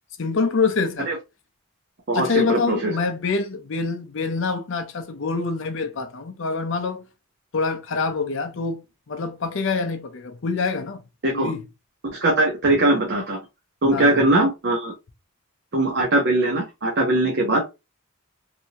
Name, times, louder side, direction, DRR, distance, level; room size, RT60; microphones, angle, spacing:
voice 1, 0.2-1.1 2.1-7.1 7.5-11.0 11.3-11.6 13.9-14.2, left 4 dB, 60° left, 0.6 m, -25 dB
voice 2, 2.1-2.9 11.2-11.5 12.1-13.4 13.8-14.9 15.7-17.6, right 2 dB, 50° right, 0.8 m, -20 dB
3.3 x 2.7 x 2.8 m
head